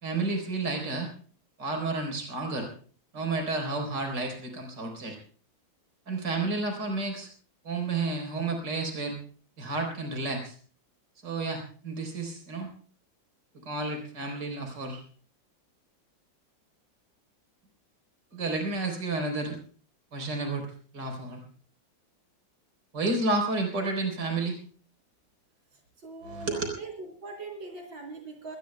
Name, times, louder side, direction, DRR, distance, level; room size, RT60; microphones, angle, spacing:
voice 1, 0.0-1.1 1.6-2.7 3.1-5.2 6.1-7.3 7.6-9.2 9.6-10.6 11.2-12.7 13.5-15.0 18.3-19.6 20.1-20.7 20.9-21.4 22.9-24.6 26.2-26.7, right 3 dB, 65° right, 4 dB, 4.5 m, -31 dB
voice 2, 26.0-28.6, right 3 dB, 80° right, 2 dB, 4.5 m, -41 dB
23.5 x 20.0 x 2.2 m, 0.42 s
omnidirectional pair, 2.0 m